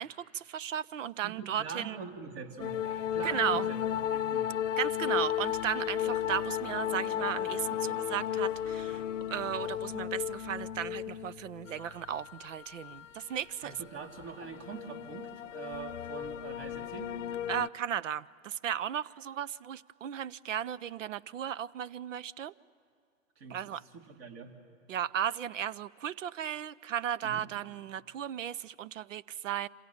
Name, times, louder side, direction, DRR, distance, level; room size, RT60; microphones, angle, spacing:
voice 1, 0.0-2.0 3.2-3.7 4.8-9.0 9.3-13.7 17.5-22.5 23.5-23.8 24.9-29.7, right 9 dB, 65° right, 21 dB, 0.8 m, -35 dB
voice 2, 1.2-2.8 3.1-3.8 4.1-4.5 13.6-17.1 23.4-24.5 27.2-27.5, right 6 dB, 50° right, 4 dB, 3.3 m, -43 dB
sound 1, 2.6-17.7, left 10 dB, 65° left, 0.7 m, -35 dB
27.5 x 26.5 x 7.3 m, 2.4 s
hypercardioid pair, 125°, 40 cm